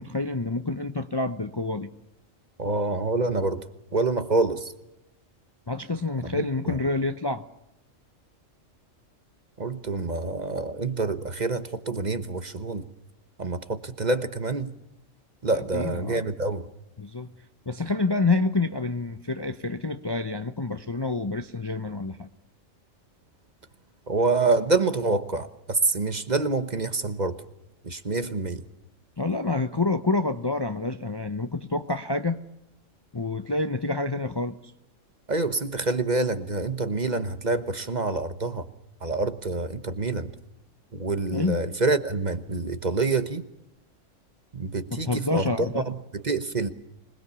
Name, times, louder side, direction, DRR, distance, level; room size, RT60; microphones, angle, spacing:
voice 1, 0.0-1.9 5.7-7.5 15.5-16.3 17.0-17.3 17.7-22.3 29.2-32.4 33.1-34.6 41.3-41.6 44.9-45.8, left 3 dB, 25° left, 0.7 m, -28 dB
voice 2, 2.6-4.7 6.3-6.8 9.6-12.9 13.4-14.7 15.4-16.7 24.1-27.4 27.8-28.6 35.3-38.6 39.0-40.3 40.9-43.4 44.5-46.7, right 3 dB, 35° right, 1.2 m, -27 dB
26.0 x 20.5 x 7.0 m
omnidirectional pair, 1.3 m